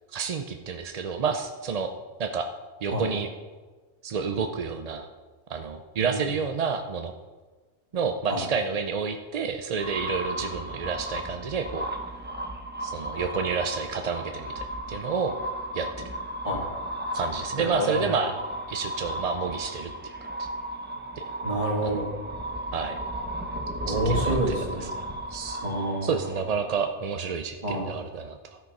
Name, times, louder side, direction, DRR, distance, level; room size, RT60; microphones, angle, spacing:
voice 1, 0.1-1.9 2.2-2.5 2.8-3.3 4.0-5.1 5.5-7.1 7.9-11.9 12.8-15.4 15.7-16.1 17.1-18.3 18.7-20.1 20.4-20.5 21.2-21.3 21.8-22.0 22.7-23.0 23.9-24.4 24.8-24.9 25.3-25.6 26.0-28.6, right 5 dB, 50° right, 6 dB, 0.5 m, -30 dB
voice 2, 6.0-6.3 8.3-8.4 16.4-16.6 17.6-18.2 21.4-22.1 23.9-24.9 25.6-26.2 27.6-27.9, right 1 dB, 30° right, -1 dB, 2.1 m, -28 dB
sound 1, 9.8-26.8, right 1 dB, 10° right, 0.7 m, -35 dB
13.0 x 6.1 x 5.4 m, 1.3 s
omnidirectional pair, 1.2 m